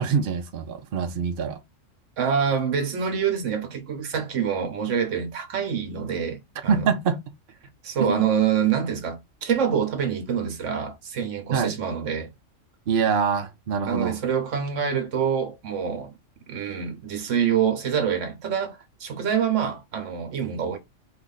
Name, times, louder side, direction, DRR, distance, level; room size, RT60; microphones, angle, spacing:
voice 1, 0.0-1.6 6.7-7.2 8.0-8.2 11.5-11.7 12.9-14.2, right 6 dB, 55° right, 0.8 m, -24 dB
voice 2, 2.2-6.9 7.8-12.3 13.8-16.1 16.5-20.8, right 7 dB, 75° right, 1.3 m, -26 dB
4.6 x 2.4 x 3.9 m
omnidirectional pair, 1.3 m